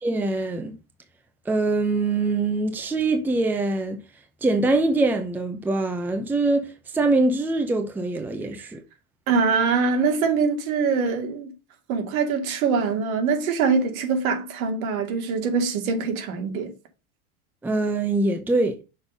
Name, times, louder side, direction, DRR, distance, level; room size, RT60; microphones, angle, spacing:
voice 1, 0.0-0.7 1.5-4.0 4.4-8.8 17.6-18.8, right 2 dB, 5° right, 0.7 m, -23 dB
voice 2, 9.3-11.5 11.9-16.7, right 5 dB, 70° right, 2.4 m, -23 dB
6.3 x 4.0 x 5.2 m
supercardioid pair, 135°, 43 cm